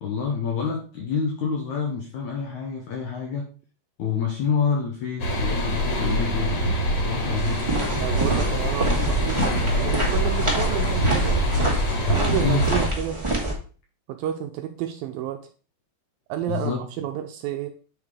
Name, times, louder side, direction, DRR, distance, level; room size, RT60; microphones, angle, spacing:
voice 1, 0.0-3.5 4.0-6.5 6.9-7.6 12.4-12.6 16.5-16.8, left 6 dB, 75° left, 1 dB, 1.8 m, -27 dB
sound 1, 5.2-12.9, equal, 45° left, 2.4 m, -25 dB
sound 2, 7.0-11.5, right 4 dB, 55° right, 2.2 m, -38 dB
sound 3, 7.3-13.5, right 1 dB, 15° right, 1.1 m, -26 dB
voice 2, 8.0-11.4 12.1-13.2 14.1-15.4 16.3-17.7, right 11 dB, 85° right, 6 dB, 2.2 m, -30 dB
8.7 x 4.8 x 3.6 m, 0.39 s
omnidirectional pair, 4.5 m